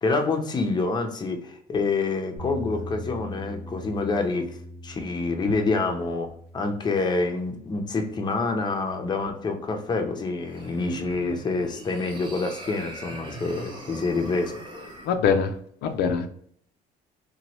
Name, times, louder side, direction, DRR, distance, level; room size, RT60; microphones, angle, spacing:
voice 1, 0.0-4.6 4.8-14.6, left 3 dB, 25° left, 4 dB, 0.5 m, -27 dB
sound 1, 2.4-10.4, equal, 50° right, 0.9 m, -43 dB
sound 2, 10.4-15.1, right 2 dB, 25° right, 0.7 m, -41 dB
voice 2, 15.0-15.5 15.8-16.3, left 6 dB, 80° left, 6 dB, 0.4 m, -23 dB
3.0 x 2.2 x 2.9 m, 0.63 s
cardioid pair, 110°, 17 cm